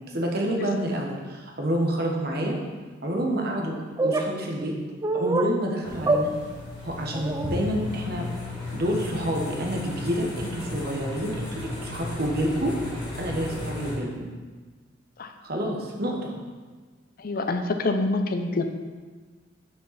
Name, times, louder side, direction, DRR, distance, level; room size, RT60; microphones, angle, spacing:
voice 1, 0.1-2.6 3.0-3.7 4.0-4.7 5.1-6.3 6.8-8.3 8.7-12.7 13.2-14.3 15.4-16.3, equal, 55° right, 0 dB, 1.1 m, -28 dB
sound 1, 4.0-4.3 5.0-5.5 6.1-6.2 7.1-7.6, right 2 dB, 20° right, 0.4 m, -24 dB
sound 2, 5.8-14.0, left 2 dB, 20° left, 2.2 m, -35 dB
voice 2, 17.2-18.6, left 2 dB, 50° left, 6 dB, 0.6 m, -26 dB
6.5 x 5.7 x 4.1 m, 1.4 s
head